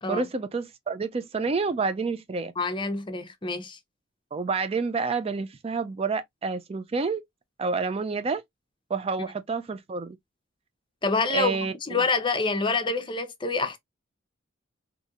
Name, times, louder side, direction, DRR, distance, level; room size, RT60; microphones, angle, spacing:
voice 1, 0.1-2.5 4.3-7.2 7.6-8.4 8.9-10.2 11.3-12.0, right 4 dB, 30° right, 0.3 m, -29 dB
voice 2, 2.6-3.8 11.0-13.8, left 3 dB, 25° left, 0.7 m, -27 dB
4.1 x 2.7 x 2.4 m
head